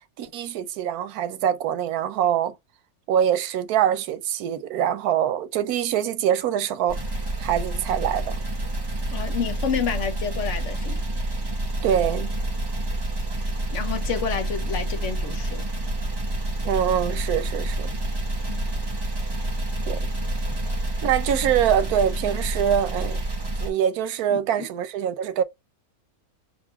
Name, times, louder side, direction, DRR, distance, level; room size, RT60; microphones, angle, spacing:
voice 1, 0.2-2.5 3.1-7.0 7.4-8.4 11.8-12.3 16.6-17.9 19.9-20.0 21.0-23.2 23.6-25.4, right 9 dB, 85° right, 1.2 m, -24 dB
sound 1, 6.9-23.7, right 1 dB, 20° right, 1.0 m, -28 dB
voice 2, 9.1-11.0 13.7-15.7 18.5-18.7 24.3-24.4, left 6 dB, 60° left, 1.0 m, -29 dB
3.9 x 2.5 x 4.4 m
omnidirectional pair, 1.5 m